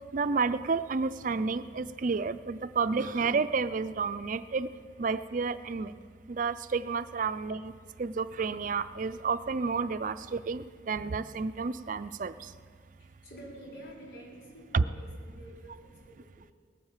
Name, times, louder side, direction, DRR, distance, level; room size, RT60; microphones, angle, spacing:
voice 1, 0.1-4.7 5.0-5.9 6.3-7.7 8.0-12.3 14.7-14.8, right 4 dB, 45° right, 13 dB, 0.4 m, -30 dB
voice 2, 13.0-16.5, right 1 dB, 90° left, -4 dB, 4.8 m, -49 dB
18.5 x 10.5 x 7.3 m, 2.1 s
head